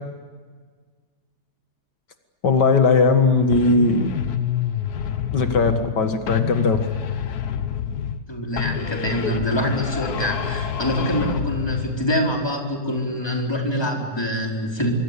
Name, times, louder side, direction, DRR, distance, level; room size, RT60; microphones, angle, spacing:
voice 1, 2.4-4.1 5.3-6.8, left 4 dB, 85° left, 7 dB, 2.4 m, -18 dB
sound 1, 3.5-6.0 6.3-8.3 8.6-12.0, left 8 dB, 65° left, 1.6 m, -27 dB
voice 2, 8.3-14.9, equal, 15° left, 0 dB, 4.6 m, -25 dB
25.5 x 24.5 x 8.4 m, 1.5 s
omnidirectional pair, 1.8 m